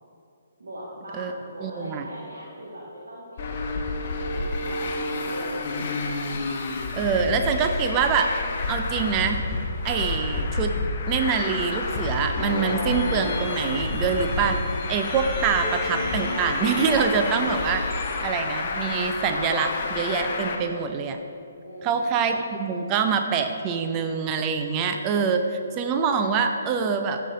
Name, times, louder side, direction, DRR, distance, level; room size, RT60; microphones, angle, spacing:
voice 1, 0.6-5.8 21.6-22.3, equal, 65° right, -6 dB, 2.0 m, -40 dB
voice 2, 1.6-2.0 6.9-8.3 8.7-9.5 9.8-10.7 11.1-14.6 14.9-17.8 18.2-21.2 21.8-27.2, right 6 dB, 25° right, 6 dB, 0.6 m, -25 dB
Traffic noise roadway noise, 3.4-20.6, left 3 dB, 40° left, 0.9 m, -29 dB
sound 1, 12.3-18.2, left 1 dB, 15° left, 2.0 m, -33 dB
14.5 x 5.8 x 3.8 m, 2.7 s
figure-of-eight pair, 135°, 0 cm